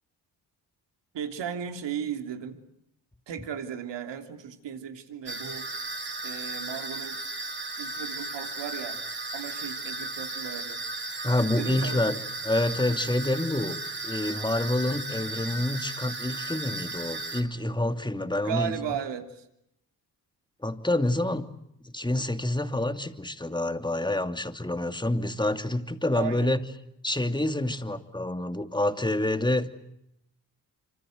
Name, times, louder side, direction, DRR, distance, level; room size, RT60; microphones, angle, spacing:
voice 1, 1.1-2.6 3.3-5.7 6.2-7.2 7.8-9.0 9.3-10.8 11.5-12.1 18.3-19.4 26.1-26.6, right 8 dB, 75° right, 6 dB, 3.3 m, -35 dB
sound 1, 5.3-17.4, right 2 dB, 25° right, 4.8 m, -35 dB
voice 2, 11.2-13.8 14.0-18.8 20.6-21.4 21.8-26.6 27.0-29.7, left 1 dB, 10° left, 7 dB, 2.7 m, -27 dB
26.0 x 26.0 x 8.1 m, 0.79 s
supercardioid pair, 60°, 44 cm